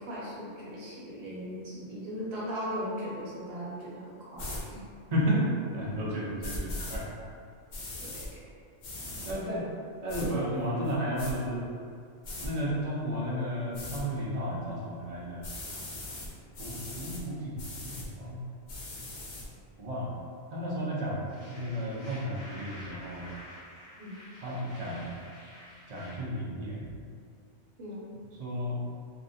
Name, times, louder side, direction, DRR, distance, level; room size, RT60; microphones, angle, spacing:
voice 1, 0.0-4.8 8.0-8.2 24.0-24.2 27.8-28.0, equal, 65° right, -7 dB, 0.9 m, -38 dB
sound 1, 4.4-4.6 6.4-7.0 7.7-8.3 8.8-9.3 10.1-10.3 10.9-11.3 12.2-12.5 13.7-14.0 15.4-16.3 16.5-17.2 17.6-18.1 18.7-19.4, left 2 dB, 80° left, 1.0 m, -39 dB
voice 2, 5.1-7.0 9.2-9.7 10.0-11.6 12.4-15.8 16.6-17.6 17.8-18.4 19.8-20.1 20.5-23.3 24.4-25.1 25.9-26.9 28.4-28.8, equal, 45° right, -7 dB, 0.6 m, -33 dB
sound 2, 21.3-26.2, left 1 dB, 50° left, 0.7 m, -49 dB
3.5 x 2.1 x 2.6 m, 2.3 s
omnidirectional pair, 1.2 m